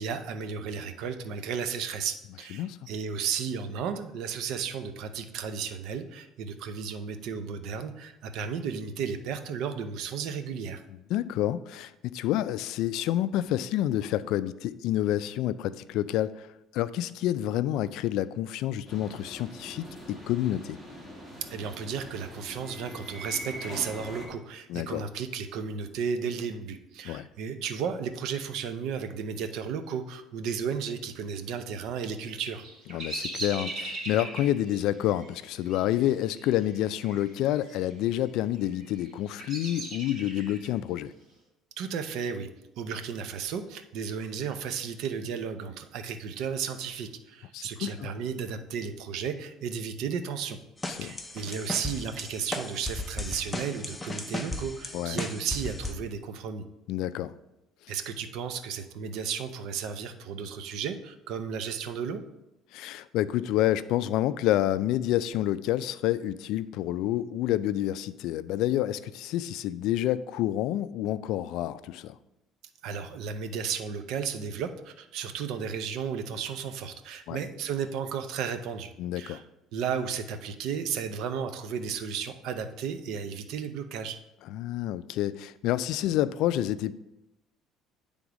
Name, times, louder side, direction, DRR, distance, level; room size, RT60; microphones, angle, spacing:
voice 1, 0.0-10.8 21.5-32.7 41.8-42.5 42.8-50.6 51.0-56.6 57.9-62.2 72.8-78.9 79.2-79.4 79.7-84.2, right 6 dB, 65° right, 9 dB, 0.6 m, -34 dB
voice 2, 2.6-2.9 11.1-16.5 16.7-20.8 24.7-25.0 27.0-27.3 32.9-41.1 47.5-48.1 50.9-51.1 54.9-55.2 56.9-57.3 62.7-72.2 77.3-77.4 79.0-79.4 84.5-86.9, left 13 dB, 70° left, 15 dB, 0.3 m, -28 dB
sound 1, 18.9-24.3, equal, 10° right, 1.5 m, -42 dB
Bird vocalization bird call bird song, 32.2-37.3 37.5-38.1 38.7-40.7, right 2 dB, 40° right, 2.5 m, -39 dB
sound 2, 50.8-55.9, left 2 dB, 10° left, 0.6 m, -36 dB
9.5 x 3.5 x 5.0 m, 0.93 s
cardioid pair, 150°, 0 cm